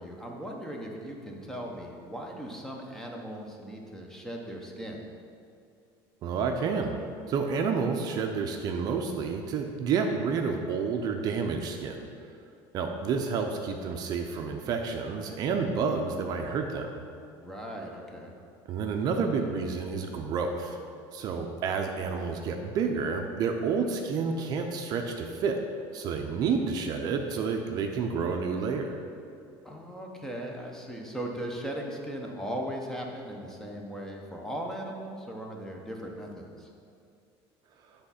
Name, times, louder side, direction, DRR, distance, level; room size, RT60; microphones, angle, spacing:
voice 1, 0.0-5.0 17.4-18.4 29.6-36.7, equal, 5° left, 0 dB, 0.8 m, -38 dB
voice 2, 6.2-7.0 7.3-12.1 12.7-17.0 18.7-20.8 21.1-25.6 25.9-29.0, right 5 dB, 45° right, 4 dB, 0.5 m, -29 dB
7.7 x 3.6 x 5.7 m, 2.5 s
cardioid pair, 150°, 9 cm